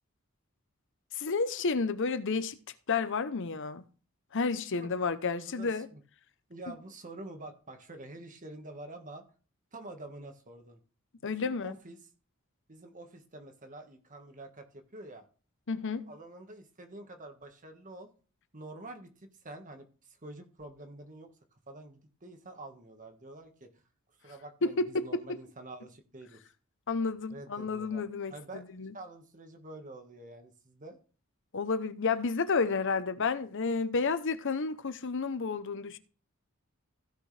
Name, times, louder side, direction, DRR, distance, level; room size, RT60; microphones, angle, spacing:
voice 1, 1.1-2.6 2.9-3.8 4.3-5.9 11.2-11.7 15.7-16.1 24.8-25.2 26.9-28.3 28.8-28.9 31.5-36.0, left 4 dB, 60° left, 0.7 m, -31 dB
voice 2, 4.7-6.0 6.5-9.2 9.7-10.8 11.2-12.0 12.7-15.2 16.1-18.1 18.5-23.8 24.2-26.4 27.3-28.0 28.3-28.6 28.9-31.0, right 2 dB, 40° right, 1.5 m, -47 dB
15.5 x 6.4 x 3.3 m
head